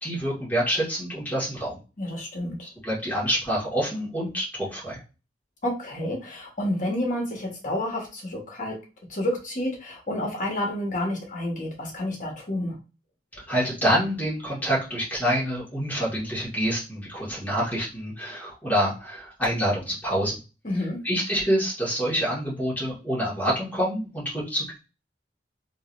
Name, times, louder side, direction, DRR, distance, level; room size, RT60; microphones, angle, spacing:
voice 1, 0.0-1.8 2.8-5.0 13.5-20.4 21.0-24.8, equal, 10° left, -6 dB, 1.9 m, -27 dB
voice 2, 2.0-2.7 5.6-8.8 9.1-12.8 20.6-21.0, left 1 dB, 45° left, 0 dB, 1.4 m, -29 dB
3.9 x 2.9 x 2.6 m, 0.32 s
head